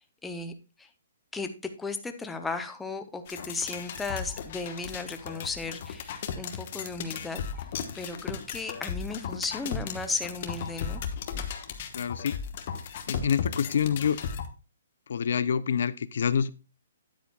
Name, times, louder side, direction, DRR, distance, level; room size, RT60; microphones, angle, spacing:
voice 1, 0.2-0.9 1.3-1.5 1.8-7.7 7.9-11.0, left 3 dB, 5° left, 7 dB, 0.6 m, -35 dB
sound 1, 3.3-14.5, left 7 dB, 40° left, 1.0 m, -36 dB
voice 2, 11.9-12.4 13.1-14.2 15.1-16.5, left 7 dB, 65° left, 17 dB, 0.4 m, -27 dB
9.5 x 8.6 x 2.2 m, 0.31 s
hypercardioid pair, 165°, 0 cm